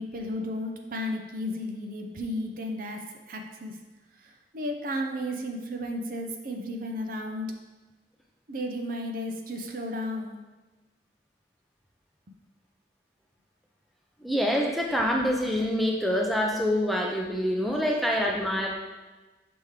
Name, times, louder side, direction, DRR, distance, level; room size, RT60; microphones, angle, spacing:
voice 1, 0.0-3.0 3.3-3.8 4.2-7.5 8.5-10.4, left 1 dB, 50° right, 3 dB, 0.6 m, -33 dB
voice 2, 14.2-18.7, equal, ahead, -1 dB, 0.5 m, -26 dB
6.0 x 3.5 x 4.8 m, 1.2 s
head